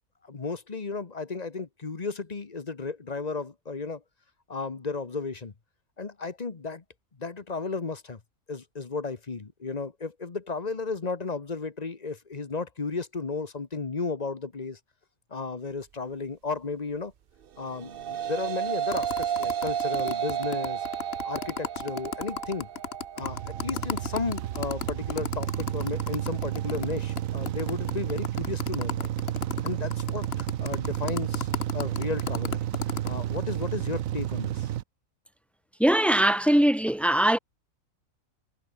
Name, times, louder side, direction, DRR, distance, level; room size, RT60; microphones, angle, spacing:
voice 1, 0.2-4.0 4.5-5.5 6.0-6.8 7.2-8.2 8.5-14.8 15.3-17.1 17.6-20.8 21.2-22.7 23.2-29.1 29.6-32.6 33.0-34.7, left 4 dB, 30° left, 1.2 m, -34 dB
sound 1, 17.6-26.8, right 9 dB, 50° right, 0.7 m, -33 dB
sound 2, 18.9-26.9 27.2-27.3 27.5-33.1, left 7 dB, 50° left, 1.2 m, -34 dB
sound 3, 23.2-34.8, right 12 dB, 80° right, 1.1 m, -31 dB
voice 2, 35.8-37.4, right 1 dB, ahead, 0.5 m, -21 dB
omnidirectional pair, 1.4 m